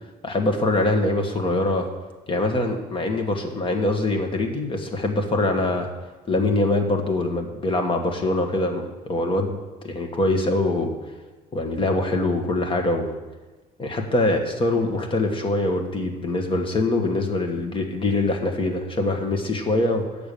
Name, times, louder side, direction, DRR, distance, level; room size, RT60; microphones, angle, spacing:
voice 1, 0.2-1.9 2.3-5.9 6.3-9.6 9.8-10.9 11.5-13.1 13.8-20.0, left 2 dB, 30° left, 4 dB, 1.7 m, -23 dB
8.8 x 7.0 x 6.9 m, 1.2 s
cardioid pair, 110°, 17 cm